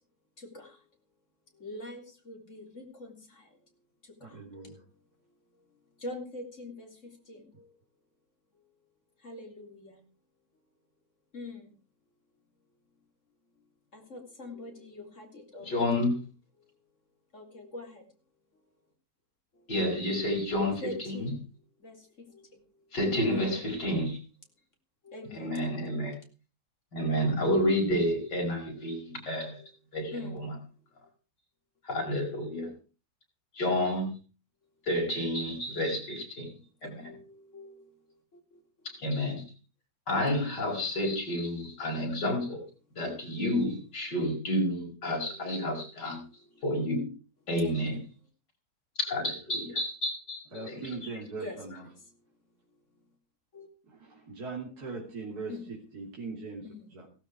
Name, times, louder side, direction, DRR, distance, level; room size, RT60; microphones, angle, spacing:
voice 1, 0.4-0.8 1.6-3.5 4.2-4.8 6.0-7.7 9.2-10.0 11.3-11.7 13.9-16.0 17.3-18.0 20.8-21.4 21.8-22.5 23.3-23.6 25.1-25.6 29.6-29.7 30.1-30.5 36.8-37.9 39.0-39.2 45.1-45.9 47.6-47.9 49.6-49.7 50.5-50.8 51.4-51.6 53.5-53.7 55.5-55.6 56.6-56.9, left 2 dB, 45° left, 2 dB, 3.9 m, -44 dB
voice 2, 4.2-4.8 50.5-51.9 53.8-56.7 56.9-57.1, right 4 dB, 60° right, -2 dB, 3.8 m, -40 dB
voice 3, 15.6-16.2 19.7-21.3 22.9-24.2 25.3-26.2 26.9-29.6 29.9-30.6 31.8-32.7 33.5-34.1 34.9-37.1 38.8-39.4 40.1-42.6 43.0-46.2 46.6-47.1 47.5-48.0 49.0-50.8, left 1 dB, 80° left, -1 dB, 6.1 m, -30 dB
16.5 x 12.5 x 4.8 m, 0.37 s
omnidirectional pair, 1.8 m